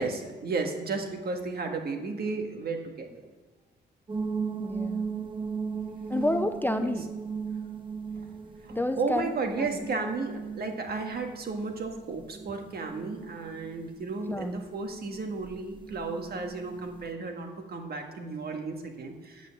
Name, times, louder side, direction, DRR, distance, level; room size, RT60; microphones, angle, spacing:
voice 1, 0.0-3.3 6.8-6.9 8.6-19.5, right 4 dB, 55° right, 4 dB, 1.6 m, -33 dB
sound 1, 4.1-17.1, right 5 dB, 25° right, 0.8 m, -37 dB
voice 2, 4.6-5.1 6.1-7.1 8.7-9.7 14.3-14.6, left 1 dB, 10° left, 8 dB, 0.4 m, -30 dB
8.4 x 8.2 x 7.0 m, 1.3 s
cardioid pair, 115°, 20 cm